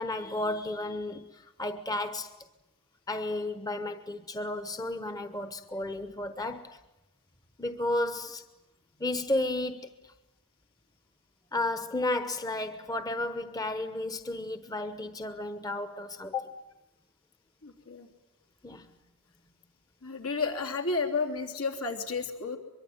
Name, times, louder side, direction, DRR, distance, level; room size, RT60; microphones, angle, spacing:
voice 1, 0.0-2.3 3.1-6.8 7.6-8.4 9.0-9.9 11.5-16.6 18.6-18.9, left 2 dB, 15° left, 1.1 m, -33 dB
voice 2, 17.6-18.1 20.0-22.6, left 4 dB, 75° left, 3.4 m, -32 dB
23.5 x 23.0 x 9.6 m
head